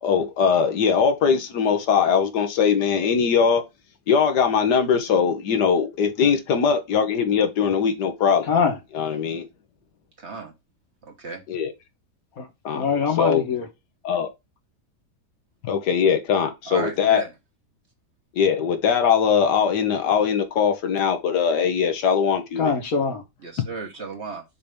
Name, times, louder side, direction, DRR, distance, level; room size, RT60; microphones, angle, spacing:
voice 1, 0.0-3.6 4.1-8.5 8.9-9.5 11.5-11.7 12.6-12.8 13.2-13.4 14.0-14.3 15.6-17.2 18.3-22.7, left 6 dB, 85° left, 1.6 m, -21 dB
voice 2, 8.4-8.8 12.4-12.5 12.7-13.7 22.6-23.2, left 6 dB, 60° left, 1.7 m, -23 dB
voice 3, 10.2-10.5 11.0-11.4 16.7-17.3 23.4-24.4, right 4 dB, 45° right, 1.5 m, -34 dB
6.6 x 2.8 x 5.1 m
omnidirectional pair, 1.8 m